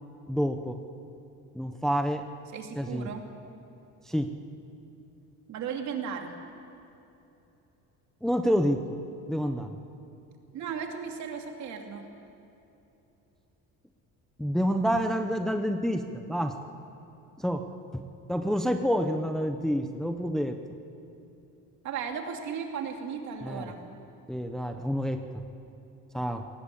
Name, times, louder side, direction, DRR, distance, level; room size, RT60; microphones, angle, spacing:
voice 1, 0.3-0.8 1.5-2.3 2.8-3.1 4.1-4.3 8.2-8.8 9.3-9.8 14.4-16.6 17.4-17.7 17.9-18.0 18.3-20.6 23.4-23.7 24.3-25.4 26.1-26.5, equal, ahead, 6 dB, 0.7 m, -28 dB
voice 2, 2.5-3.2 5.5-6.3 10.5-12.0 21.8-23.8, right 7 dB, 60° right, 3 dB, 2.8 m, -35 dB
21.5 x 18.5 x 8.5 m, 2.9 s
cardioid pair, 165°, 32 cm